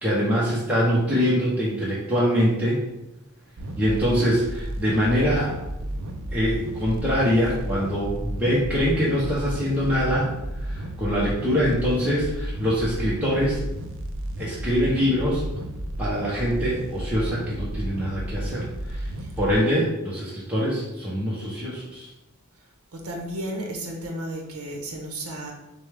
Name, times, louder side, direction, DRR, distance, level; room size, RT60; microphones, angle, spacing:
voice 1, 0.0-2.8 3.8-5.6 6.3-10.3 10.6-13.7 14.4-15.4 16.0-19.1 19.4-22.1, equal, 5° right, -8 dB, 0.8 m, -24 dB
sound 1, 3.6-19.6, right 1 dB, 60° right, 0.5 m, -32 dB
voice 2, 22.9-25.5, right 1 dB, 85° right, 1 dB, 0.9 m, -33 dB
6.7 x 2.2 x 3.4 m, 0.97 s
head